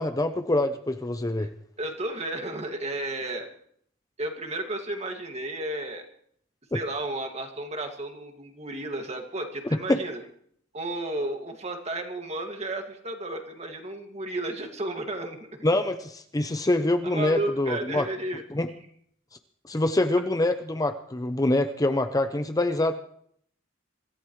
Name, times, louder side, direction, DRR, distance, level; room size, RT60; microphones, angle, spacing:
voice 1, 0.0-1.5 6.7-6.8 9.9-10.0 15.6-18.0 18.5-18.7 19.7-22.9, left 1 dB, 20° left, 8 dB, 0.6 m, -25 dB
voice 2, 1.8-3.5 4.2-6.1 6.7-10.2 10.7-15.5 17.0-18.4, right 2 dB, 35° right, 4 dB, 2.1 m, -33 dB
24.5 x 14.5 x 3.2 m, 0.65 s
head